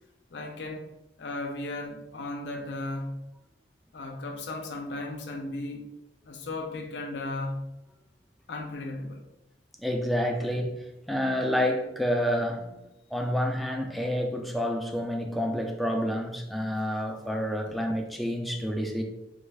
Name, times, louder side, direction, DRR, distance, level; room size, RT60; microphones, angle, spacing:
voice 1, 0.3-0.9 1.2-3.1 3.9-5.9 6.3-7.6 8.5-9.2 17.7-17.8, left 2 dB, 80° left, 0.6 m, -35 dB
voice 2, 9.8-12.9 13.1-19.0, equal, ahead, 0.3 m, -29 dB
3.3 x 2.3 x 3.3 m
head